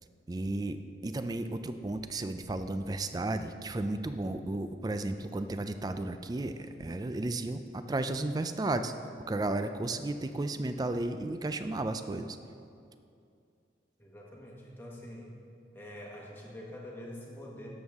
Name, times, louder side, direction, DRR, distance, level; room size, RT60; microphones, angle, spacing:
voice 1, 0.3-8.9 9.3-12.4, right 2 dB, 20° right, 9 dB, 0.3 m, -33 dB
voice 2, 14.0-15.3 15.7-17.7, left 1 dB, 10° left, -3 dB, 1.3 m, -45 dB
12.5 x 7.1 x 3.5 m, 2.5 s
head